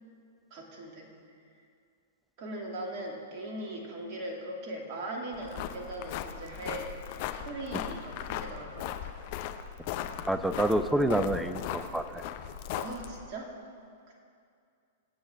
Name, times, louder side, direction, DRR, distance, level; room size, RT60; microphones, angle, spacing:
voice 1, 0.5-1.1 2.4-9.1 12.8-13.5, right 1 dB, 40° right, 0 dB, 2.5 m, -40 dB
sound 1, 5.3-13.3, left 10 dB, 45° left, 0.7 m, -38 dB
voice 2, 10.3-12.2, right 1 dB, 5° right, 11 dB, 0.6 m, -28 dB
23.0 x 8.3 x 3.6 m, 2.4 s
figure-of-eight pair, 100°, 0 cm